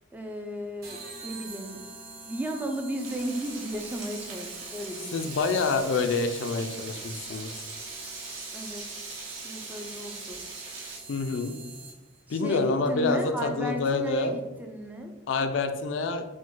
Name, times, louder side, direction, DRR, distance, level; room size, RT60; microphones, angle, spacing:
voice 1, 0.1-1.8 2.3-5.2 8.5-8.9 9.4-10.4 12.3-15.1, equal, 10° right, 3 dB, 0.4 m, -34 dB
sound 1, 0.8-12.2, right 4 dB, 50° right, 1.2 m, -45 dB
Frying (food), 3.0-11.0, right 3 dB, 85° right, 1.1 m, -41 dB
voice 2, 5.1-7.5 11.1-11.5 12.3-14.4 15.3-16.2, left 4 dB, 70° left, 8 dB, 0.4 m, -27 dB
4.9 x 2.2 x 3.7 m, 1.1 s
head